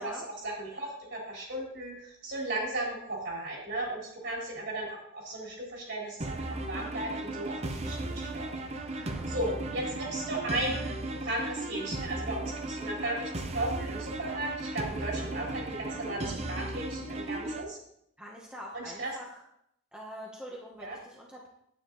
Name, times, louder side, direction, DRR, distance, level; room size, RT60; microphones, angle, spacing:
voice 1, 0.4-8.6 8.9-10.9 11.2-17.8 18.7-19.1 20.8-21.0, right 1 dB, 60° right, -3 dB, 4.1 m, -36 dB
sound 1, 6.2-17.6, right 2 dB, 30° right, 0.7 m, -36 dB
voice 2, 9.0-9.3 18.2-19.4 19.9-21.5, equal, 5° right, -3 dB, 1.2 m, -44 dB
9.4 x 9.1 x 4.0 m, 0.75 s
head